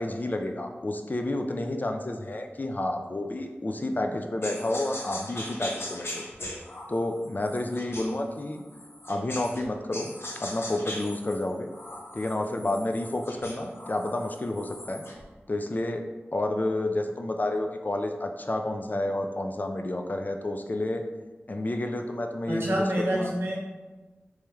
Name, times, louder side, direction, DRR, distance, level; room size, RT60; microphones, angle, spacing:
voice 1, 0.0-6.3 6.9-8.6 9.1-11.7 12.1-15.1 15.5-16.0 16.3-21.0 21.5-23.3, left 1 dB, 40° left, 4 dB, 0.4 m, -30 dB
sound 1, 4.4-9.6 9.9-15.2, left 1 dB, 65° left, 0.8 m, -40 dB
voice 2, 22.5-23.6, right 1 dB, 70° right, -4 dB, 1.0 m, -27 dB
3.2 x 3.0 x 3.4 m, 1.3 s
cardioid pair, 40°, 4 cm